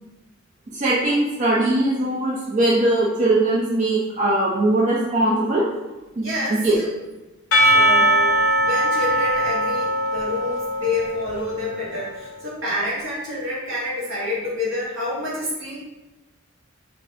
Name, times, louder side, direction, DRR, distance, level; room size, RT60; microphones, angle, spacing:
voice 1, 0.7-5.6 6.2-6.8, right 1 dB, 40° right, -4 dB, 0.4 m, -20 dB
voice 2, 6.1-6.6 7.6-15.8, left 1 dB, 75° right, -7 dB, 1.3 m, -28 dB
Percussion / Church bell, 7.5-12.1, right 1 dB, 65° left, 0.5 m, -20 dB
3.3 x 2.5 x 2.6 m, 1.1 s
head